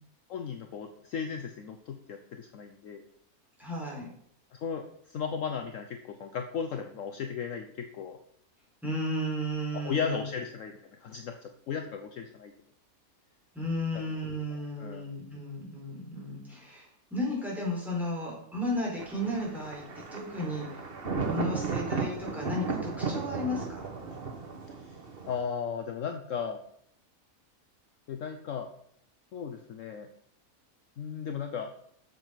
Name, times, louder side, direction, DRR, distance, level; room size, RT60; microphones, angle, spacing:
voice 1, 0.3-3.0 4.5-8.2 9.7-12.5 14.8-15.1 25.3-26.6 28.1-28.7 29.3-30.1 31.0-31.7, left 6 dB, 60° left, 6 dB, 1.1 m, -36 dB
voice 2, 3.6-4.1 8.8-10.2 13.5-20.8 21.2-23.9, left 1 dB, ahead, -4 dB, 4.0 m, -34 dB
Thunder, 19.0-25.4, right 4 dB, 40° right, 1.4 m, -35 dB
7.7 x 7.3 x 5.7 m, 0.68 s
omnidirectional pair, 1.6 m